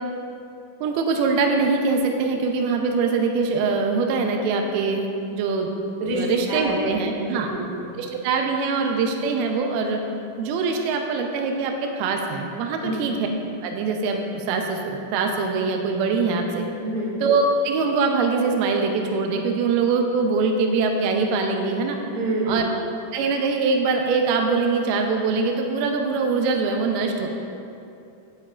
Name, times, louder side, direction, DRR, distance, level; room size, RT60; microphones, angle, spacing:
voice 1, 0.8-5.7 6.1-7.5 8.0-10.0 10.4-13.2 13.6-16.7 17.2-22.0 22.5-22.6 23.1-27.3, right 4 dB, 85° right, 2 dB, 2.2 m, -23 dB
voice 2, 6.5-7.0 7.3-7.7 12.8-13.1 16.8-17.2 22.1-22.7, right 2 dB, 65° right, -6 dB, 4.1 m, -27 dB
15.0 x 7.9 x 2.4 m, 2.6 s
omnidirectional pair, 5.3 m